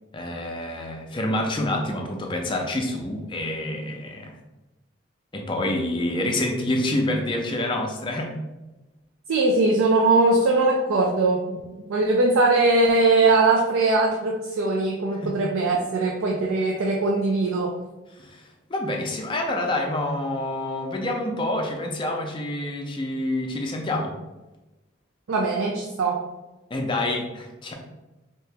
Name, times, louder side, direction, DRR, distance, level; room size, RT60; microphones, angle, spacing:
voice 1, 0.1-4.3 5.3-8.4 15.2-15.3 18.2-18.4 18.7-24.2 26.7-27.7, left 1 dB, 25° left, 1 dB, 0.4 m, -27 dB
voice 2, 9.3-17.8 25.3-26.2, right 3 dB, 90° right, 0 dB, 0.4 m, -21 dB
2.8 x 2.7 x 3.3 m, 1.1 s
head